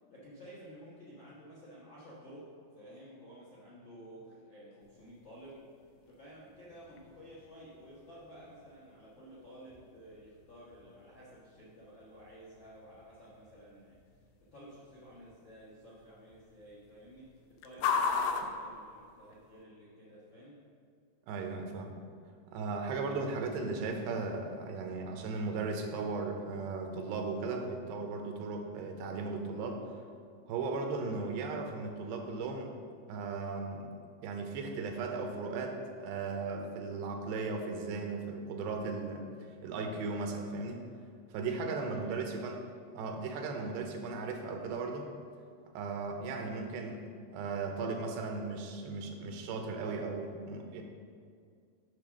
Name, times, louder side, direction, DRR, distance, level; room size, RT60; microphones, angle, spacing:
voice 1, 0.1-2.5 2.7-5.6 6.0-14.0 14.5-17.3 17.6-20.6 41.5-42.3, equal, 65° left, -8 dB, 1.2 m, -52 dB
sound 1, 4.8-19.6, left 5 dB, 80° left, 2.6 m, -41 dB
voice 2, 21.3-21.9 22.5-29.8 30.5-32.7 33.1-33.9 34.2-39.3 39.6-40.9 41.3-42.6 42.9-45.1 45.7-47.0 47.3-50.8, right 4 dB, 85° right, 3 dB, 2.9 m, -36 dB
10.0 x 3.7 x 6.4 m, 2.2 s
omnidirectional pair, 4.7 m